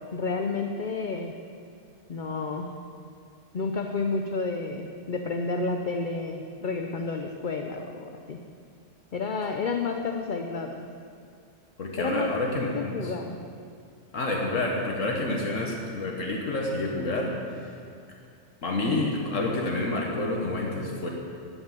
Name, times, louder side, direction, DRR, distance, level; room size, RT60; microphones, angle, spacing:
voice 1, 0.1-1.3 2.1-2.7 3.5-8.4 9.1-10.9 12.0-12.3 12.7-13.4, left 4 dB, 45° left, 4 dB, 0.8 m, -30 dB
voice 2, 11.8-13.1 14.1-17.4 18.6-21.1, left 2 dB, 70° left, -1 dB, 1.6 m, -28 dB
14.0 x 6.2 x 9.2 m, 2.4 s
omnidirectional pair, 1.4 m